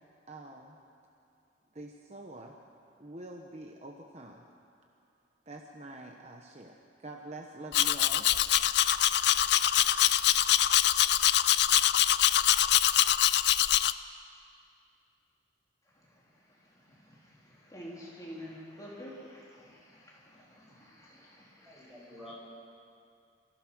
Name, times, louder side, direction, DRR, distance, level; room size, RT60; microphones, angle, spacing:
voice 1, 0.3-0.8 1.7-2.5 3.0-4.4 5.5-8.2, right 2 dB, 35° right, 1 dB, 1.1 m, -46 dB
Domestic sounds home sounds, 7.7-13.9, left 12 dB, 60° left, 0.5 m, -24 dB
voice 2, 17.7-22.0, equal, 20° left, -6 dB, 3.8 m, -48 dB
voice 3, 21.6-22.3, left 1 dB, ahead, -6 dB, 6.5 m, -49 dB
27.0 x 16.0 x 6.3 m, 2.5 s
head